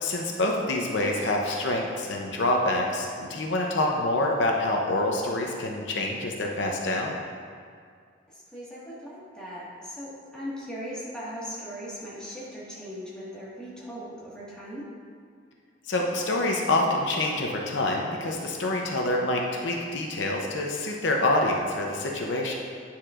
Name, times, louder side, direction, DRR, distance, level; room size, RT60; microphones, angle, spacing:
voice 1, 0.0-7.1 15.8-22.5, left 2 dB, 70° left, 0 dB, 0.7 m, -26 dB
voice 2, 8.3-14.9, equal, 5° left, -8 dB, 1.6 m, -39 dB
9.9 x 7.2 x 2.5 m, 2.1 s
head